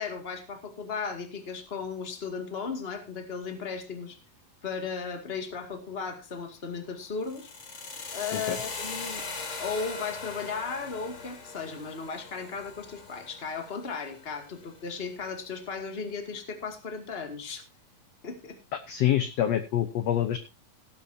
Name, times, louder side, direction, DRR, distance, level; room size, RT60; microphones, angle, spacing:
voice 1, 0.0-4.2 4.6-7.8 8.1-9.2 9.6-17.6 18.2-18.6, left 5 dB, 20° left, 6 dB, 1.7 m, -36 dB
sound 1, 7.2-15.3, left 4 dB, 45° left, 0.9 m, -40 dB
voice 2, 18.9-20.4, left 11 dB, 70° left, 10 dB, 1.5 m, -26 dB
17.5 x 10.5 x 2.7 m, 0.28 s
omnidirectional pair, 4.0 m